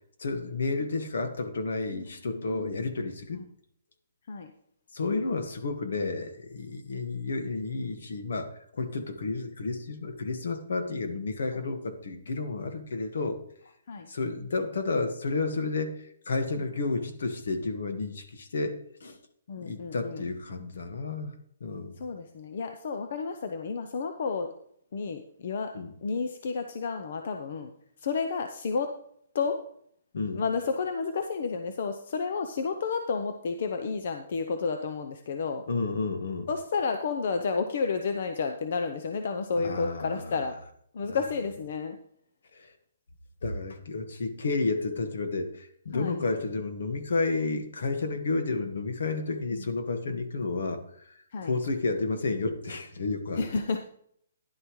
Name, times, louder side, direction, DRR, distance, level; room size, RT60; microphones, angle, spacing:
voice 1, 0.2-3.4 4.9-13.4 14.1-19.2 19.6-22.0 25.7-25.9 30.1-30.4 35.7-36.5 39.5-40.4 41.0-41.2 42.5-42.7 43.4-51.1 51.4-53.4, left 3 dB, 70° left, 7 dB, 1.6 m, -31 dB
voice 2, 1.9-2.7 3.3-3.4 4.3-4.5 13.9-14.1 19.5-20.2 22.0-24.5 24.9-25.7 26.0-27.7 28.0-28.9 29.3-29.6 30.3-35.6 36.5-40.5 40.9-42.0 45.9-46.2 49.5-49.6 51.3-51.5 53.4-53.8, left 5 dB, 45° left, 6 dB, 0.7 m, -31 dB
11.5 x 10.5 x 3.2 m, 0.67 s
hypercardioid pair, 175°, 0 cm